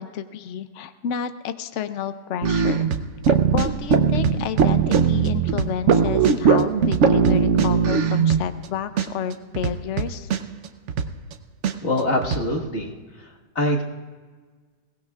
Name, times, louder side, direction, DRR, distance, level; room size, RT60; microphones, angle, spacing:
voice 1, 0.0-2.9 3.3-10.3, left 8 dB, 80° left, 10 dB, 0.6 m, -30 dB
sound 1, 2.4-8.7 9.0-9.1 9.3-11.3 11.6-11.7 12.0-12.4, right 6 dB, 60° right, 0.7 m, -20 dB
voice 2, 11.8-12.9 13.6-13.8, left 1 dB, 40° left, 0 dB, 1.8 m, -23 dB
22.5 x 18.0 x 2.4 m, 1.5 s
omnidirectional pair, 2.0 m